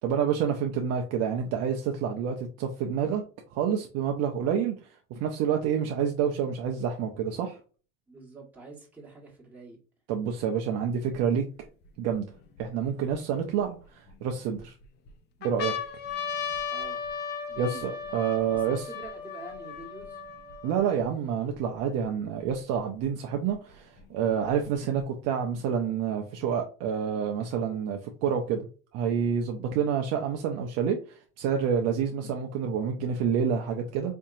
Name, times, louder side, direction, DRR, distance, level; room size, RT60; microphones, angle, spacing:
voice 1, 0.0-3.2 3.5-4.7 5.1-7.6 10.1-11.5 12.0-12.3 12.6-14.7 15.4-15.7 17.6-18.8 20.6-28.7 28.9-34.1, right 7 dB, 45° right, 3 dB, 0.6 m, -28 dB
voice 2, 8.1-9.8 16.7-17.0 17.5-17.8 18.5-20.2, right 2 dB, 5° right, -4 dB, 1.4 m, -46 dB
sound 1, 11.1-11.2 11.9-13.1 13.8-14.6 15.1-15.2 15.4-21.0 21.8-21.9 22.0-23.0 24.0-25.0, left 6 dB, 30° left, 0.5 m, -36 dB
4.4 x 2.7 x 2.4 m, 0.37 s
supercardioid pair, 135°, 37 cm